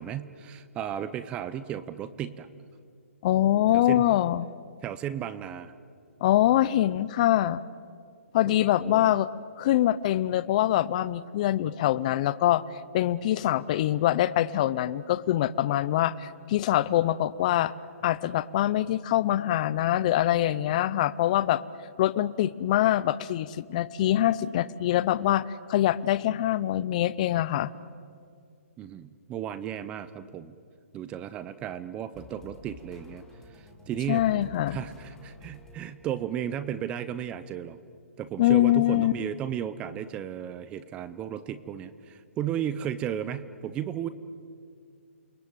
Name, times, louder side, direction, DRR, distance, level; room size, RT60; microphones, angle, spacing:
voice 1, 0.0-2.5 3.7-4.1 4.8-5.7 8.5-9.1 28.8-30.5 30.9-33.2 33.5-34.3 34.7-37.8 38.2-44.1, right 10 dB, 15° right, 14 dB, 0.6 m, -34 dB
voice 2, 3.2-4.5 6.2-7.6 8.3-9.3 9.6-12.6 12.9-17.7 18.0-21.6 22.0-27.7 34.1-34.8 38.4-39.1, left 13 dB, 30° left, 15 dB, 0.6 m, -24 dB
sound 1, 32.1-36.3, left 3 dB, 5° left, 2.3 m, -50 dB
29.0 x 21.0 x 9.2 m, 2.2 s
hypercardioid pair, 160°, 8 cm